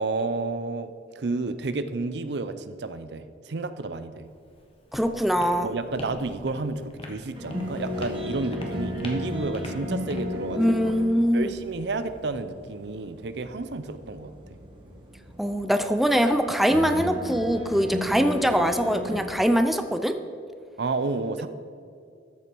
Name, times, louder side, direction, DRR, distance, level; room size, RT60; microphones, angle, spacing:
voice 1, 0.0-4.2 5.6-10.9 11.3-14.3 20.8-21.5, right 3 dB, 70° right, 11 dB, 0.6 m, -31 dB
Walk footsteps, 4.2-12.2, left 1 dB, 35° left, 1.3 m, -43 dB
voice 2, 4.9-5.7 10.6-11.5 15.4-20.1, equal, ahead, 7 dB, 0.5 m, -23 dB
sound 1, 7.4-19.2, left 1 dB, 30° right, 1.9 m, -35 dB
13.5 x 7.0 x 4.5 m, 2.4 s
head